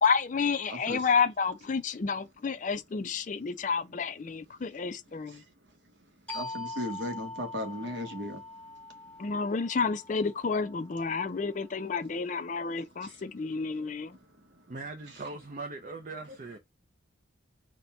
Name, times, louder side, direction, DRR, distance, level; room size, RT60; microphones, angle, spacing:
voice 1, 0.0-5.4 9.2-14.2, left 5 dB, 40° left, 0.4 m, -30 dB
voice 2, 0.7-1.0 6.3-8.4 8.9-9.0 13.0-13.2 14.4-14.6, equal, 60° right, 1.1 m, -37 dB
sound 1, 6.3-11.6, left 2 dB, 5° left, 0.9 m, -43 dB
voice 3, 14.7-16.6, right 3 dB, 40° right, 0.5 m, -40 dB
4.0 x 2.2 x 4.2 m
head